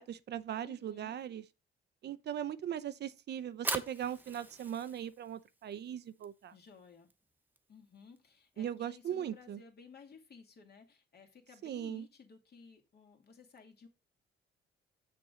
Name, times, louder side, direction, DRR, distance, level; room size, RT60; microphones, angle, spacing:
voice 1, 0.0-1.4 2.0-6.5 8.6-9.6 11.6-12.0, right 10 dB, 60° right, 0.6 m, -39 dB
voice 2, 0.6-1.2 6.5-7.1 7.7-13.9, left 5 dB, 55° left, 2.3 m, -56 dB
Fire, 3.4-9.6, right 1 dB, 10° right, 1.1 m, -44 dB
6.9 x 6.6 x 3.7 m
cardioid pair, 90°, 20 cm